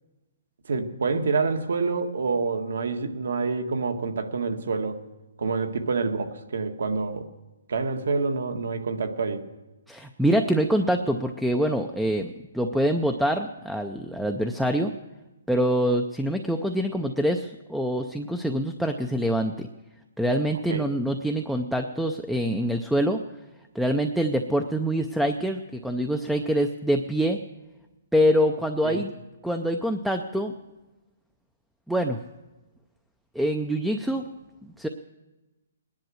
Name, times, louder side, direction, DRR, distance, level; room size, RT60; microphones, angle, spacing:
voice 1, 0.7-5.0 5.4-7.3 7.7-9.4 20.7-20.8 28.8-29.0, right 4 dB, 70° right, 7 dB, 1.6 m, -27 dB
voice 2, 9.9-14.9 15.5-19.7 20.2-23.2 23.7-27.4 28.1-29.1 29.4-30.5 31.9-32.2 33.3-34.3 34.6-34.9, equal, ahead, 6 dB, 0.4 m, -25 dB
20.0 x 10.5 x 6.3 m, 1.1 s
hypercardioid pair, 175°, 0 cm